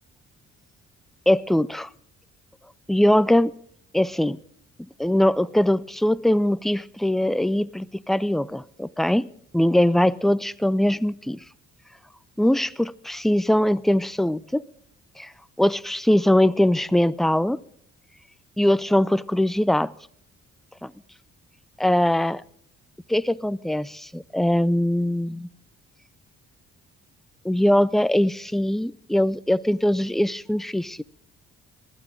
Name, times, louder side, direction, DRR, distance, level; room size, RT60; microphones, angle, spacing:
voice 1, 1.3-1.9 2.9-3.5 3.9-4.4 5.0-9.3 9.5-11.4 12.4-14.6 15.2-15.3 15.6-17.6 18.6-19.9 20.8-20.9 21.8-22.4 23.1-25.5 27.4-31.0, left 1 dB, ahead, 17 dB, 0.4 m, -21 dB
19.5 x 12.0 x 3.8 m, 0.67 s
cardioid pair, 90°, 30 cm